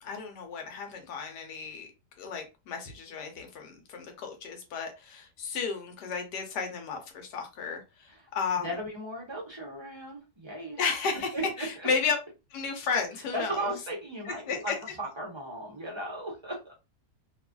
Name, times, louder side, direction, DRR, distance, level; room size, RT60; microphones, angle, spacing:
voice 1, 0.0-1.9 2.2-8.7 10.8-12.2 12.5-13.7 14.2-14.8, left 5 dB, 85° left, 4 dB, 1.3 m, -33 dB
voice 2, 8.6-10.8 11.3-11.9 13.3-14.7 15.0-16.7, right 1 dB, 30° right, -2 dB, 0.5 m, -36 dB
3.0 x 2.4 x 2.2 m, 0.27 s
omnidirectional pair, 1.8 m